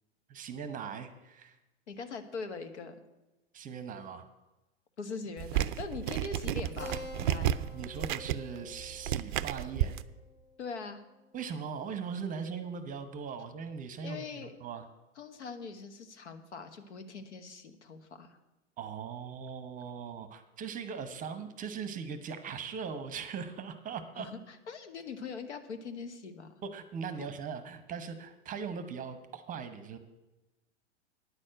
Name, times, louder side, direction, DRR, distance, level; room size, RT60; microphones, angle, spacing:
voice 1, 0.3-1.6 3.5-4.3 7.7-9.9 11.3-14.9 18.8-24.3 26.6-30.0, right 6 dB, 20° right, 10 dB, 0.9 m, -40 dB
voice 2, 1.9-2.9 5.0-7.5 10.6-11.0 14.0-14.5 15.2-18.4 24.2-26.5 27.2-27.3, left 4 dB, 70° left, 8 dB, 1.3 m, -42 dB
sound 1, 5.4-10.0, right 12 dB, 45° right, 0.4 m, -32 dB
Keyboard (musical), 6.8-11.8, left 3 dB, 10° left, 2.1 m, -49 dB
9.7 x 6.4 x 7.8 m, 1.0 s
figure-of-eight pair, 95°, 36 cm